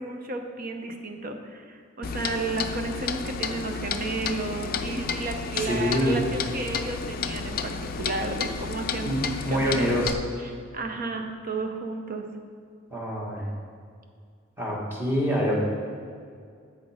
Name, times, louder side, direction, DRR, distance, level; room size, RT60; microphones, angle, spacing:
voice 1, 0.0-10.0 10.4-12.3, right 3 dB, 45° right, 5 dB, 0.7 m, -33 dB
Clock, 2.0-10.1, left 5 dB, 45° left, 0.4 m, -32 dB
voice 2, 5.6-6.2 9.0-10.2 12.9-13.4 14.6-15.6, equal, 10° right, -5 dB, 1.7 m, -26 dB
8.3 x 6.3 x 5.0 m, 2.2 s
head